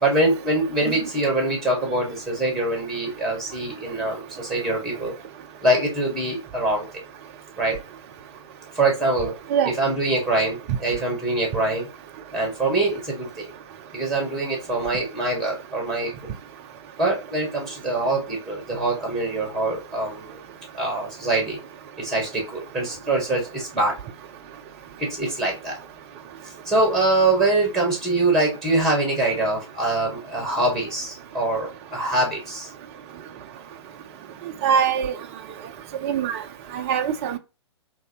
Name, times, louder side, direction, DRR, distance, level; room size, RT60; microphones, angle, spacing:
voice 1, 0.0-5.1 5.6-6.9 7.6-7.8 8.7-9.3 9.6-11.9 12.3-13.5 13.9-16.1 17.0-20.4 20.7-21.6 22.0-23.9 25.0-25.7 26.6-32.7, right 2 dB, ahead, 1.1 m, -24 dB
voice 2, 34.6-35.1 36.0-36.4 36.7-37.4, right 7 dB, 25° right, 0.3 m, -22 dB
3.9 x 2.6 x 2.7 m
figure-of-eight pair, 125°, 15 cm